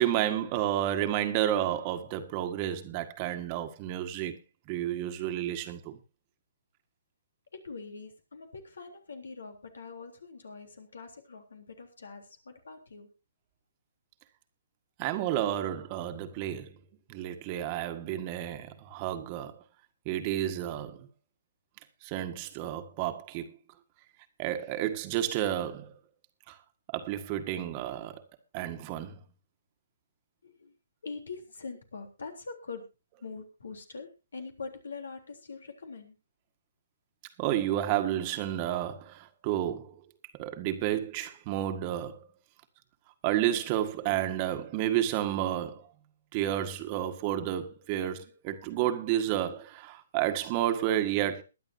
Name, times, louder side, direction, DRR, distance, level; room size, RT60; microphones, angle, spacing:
voice 1, 0.0-4.4 4.7-6.0 15.0-16.7 17.1-19.6 20.0-21.1 22.0-23.6 24.4-25.9 26.5-26.6 26.9-28.2 28.5-29.2 37.4-40.0 40.3-42.3 43.2-45.9 46.3-51.4, right 12 dB, 30° right, 1.7 m, -31 dB
voice 2, 7.5-13.1 30.4-30.8 31.0-32.9 33.2-36.2, left 4 dB, 80° left, 3.5 m, -43 dB
22.0 x 10.5 x 2.8 m
hypercardioid pair, 140°, 0 cm